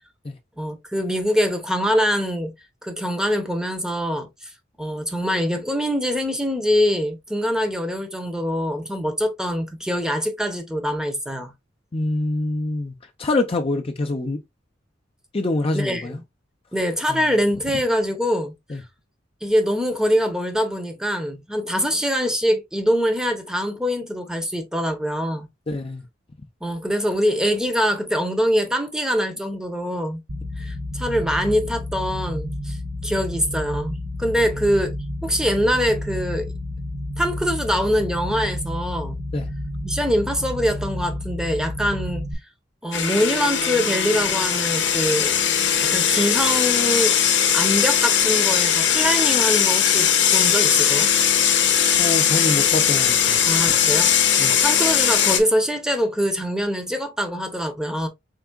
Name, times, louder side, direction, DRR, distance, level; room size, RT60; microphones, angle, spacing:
voice 1, 0.6-2.5 2.8-4.5 4.8-11.5 15.7-16.2 16.7-18.5 19.4-25.5 26.6-30.2 30.6-32.8 33.0-34.9 35.2-36.5 37.2-39.2 39.8-42.3 42.8-45.3 45.8-47.1 47.5-51.1 53.5-54.1 54.5-58.1, equal, 5° right, 0.8 m, -24 dB
voice 2, 11.9-12.9 13.2-14.4 15.3-16.2 17.1-17.2 18.7-18.8 25.7-26.0 39.3-39.5 52.0-53.4 54.4-54.5, left 2 dB, 30° left, 0.5 m, -25 dB
sound 1, 30.3-42.3, left 1 dB, 65° right, 1.0 m, -30 dB
sound 2, 42.9-55.4, left 8 dB, 75° left, 0.8 m, -19 dB
4.5 x 3.5 x 2.2 m
head